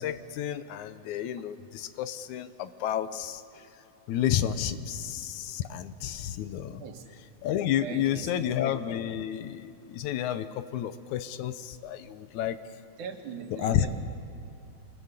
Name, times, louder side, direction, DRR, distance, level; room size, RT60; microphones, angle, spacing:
voice 1, 0.0-3.6 4.1-6.8 7.4-12.6 13.5-13.9, left 10 dB, 80° left, 12 dB, 2.2 m, -31 dB
voice 2, 7.8-8.5 13.0-14.0, right 6 dB, 80° right, 4 dB, 3.1 m, -40 dB
25.0 x 20.5 x 8.2 m, 2.9 s
omnidirectional pair, 3.4 m